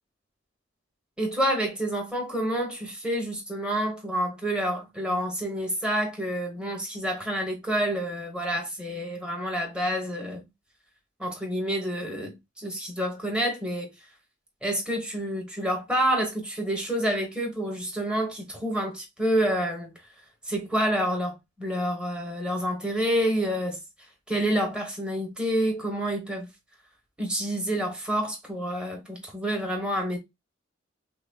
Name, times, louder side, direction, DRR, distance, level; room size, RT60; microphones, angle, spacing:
voice 1, 1.2-10.4 11.2-13.9 14.6-19.9 20.5-23.8 24.3-26.5 27.2-30.2, right 1 dB, 5° right, 1.3 m, -28 dB
6.0 x 2.2 x 2.3 m
head